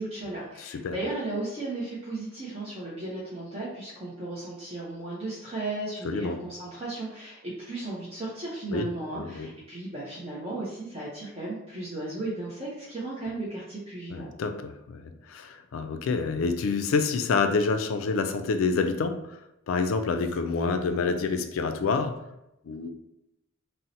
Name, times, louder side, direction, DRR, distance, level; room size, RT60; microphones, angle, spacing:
voice 1, 0.0-14.3, right 2 dB, 25° right, -7 dB, 0.5 m, -35 dB
voice 2, 0.6-1.0 6.0-6.4 8.7-8.9 9.1-9.5 14.1-19.4 19.7-22.2 22.6-22.9, left 4 dB, 70° left, 8 dB, 0.3 m, -27 dB
2.7 x 2.0 x 3.9 m, 0.88 s
head